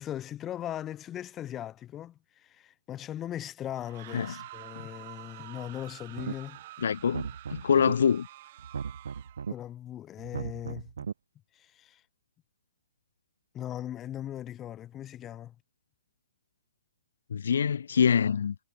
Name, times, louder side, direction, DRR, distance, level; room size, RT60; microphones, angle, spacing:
voice 1, 0.0-6.6 9.5-10.9 11.6-12.0 13.5-15.5, left 11 dB, 10° left, 0.7 m, -39 dB
sound 1, 3.8-9.5, right 15 dB, 30° right, 1.8 m, -48 dB
sound 2, 6.1-6.6 7.0-7.9 8.6-9.5 10.2-11.1, right 6 dB, 80° right, 1.5 m, -37 dB
voice 2, 6.8-8.3 17.3-18.6, left 7 dB, 65° left, 0.3 m, -25 dB
hypercardioid pair, 175°, 0 cm